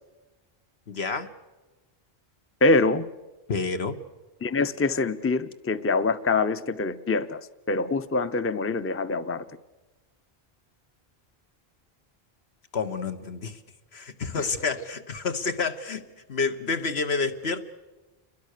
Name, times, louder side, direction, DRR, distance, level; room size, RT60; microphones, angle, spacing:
voice 1, 0.9-1.3 3.5-4.0 12.7-13.6 13.9-17.7, left 4 dB, 85° left, 8 dB, 1.7 m, -29 dB
voice 2, 2.6-3.0 4.4-9.5 14.4-14.5, left 3 dB, 15° left, 12 dB, 0.6 m, -25 dB
29.5 x 22.0 x 6.7 m, 1.1 s
omnidirectional pair, 1.0 m